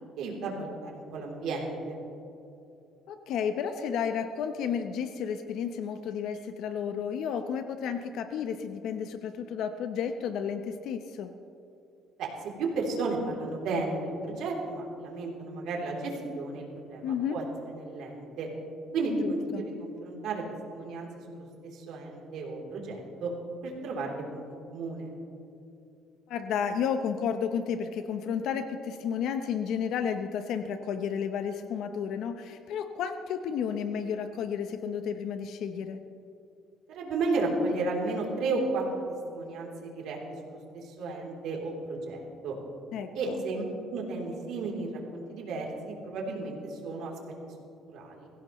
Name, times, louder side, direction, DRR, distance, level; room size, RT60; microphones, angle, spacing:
voice 1, 0.2-1.9 12.2-12.3 12.6-18.5 18.9-20.4 20.7-21.5 21.7-23.3 23.6-25.1 36.9-39.0 39.3-40.2 40.4-42.5 43.1-47.1 47.9-48.3, right 3 dB, 75° right, -1 dB, 3.3 m, -33 dB
voice 2, 3.1-11.3 17.0-17.4 19.2-19.7 26.3-36.0 42.9-43.4, left 7 dB, 70° left, 8 dB, 0.8 m, -32 dB
22.5 x 16.0 x 3.1 m, 2.8 s
cardioid pair, 135°, 0 cm